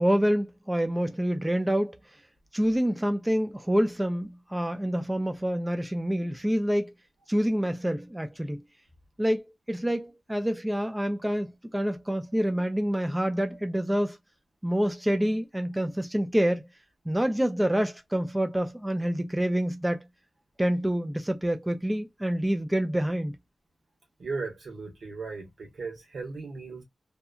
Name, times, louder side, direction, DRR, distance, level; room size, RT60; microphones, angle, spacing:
voice 1, 0.0-2.0 2.5-6.9 7.3-8.6 9.2-14.2 14.6-16.7 17.1-20.0 20.6-23.3, equal, 10° right, 0.4 m, -27 dB
voice 2, 24.2-26.8, right 4 dB, 90° right, 1.0 m, -37 dB
2.7 x 2.1 x 2.4 m
cardioid pair, 60°, 0 cm